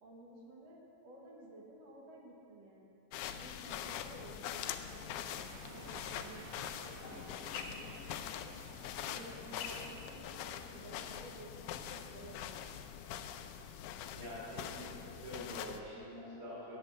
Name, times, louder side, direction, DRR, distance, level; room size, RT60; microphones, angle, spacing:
voice 1, 0.0-2.9 3.3-5.4 5.7-8.6 9.1-10.2 10.5-12.6, right 1 dB, 60° right, -3 dB, 2.3 m, -54 dB
sound 1, 3.1-15.8, left 9 dB, 80° left, 2.0 m, -44 dB
sound 2, 4.8-10.2, right 5 dB, 90° right, 2.3 m, -56 dB
sound 3, 7.0-13.4, left 4 dB, 65° left, 1.5 m, -53 dB
voice 2, 14.1-16.8, equal, 45° right, -12 dB, 3.7 m, -46 dB
7.9 x 7.7 x 8.7 m, 2.8 s
omnidirectional pair, 3.6 m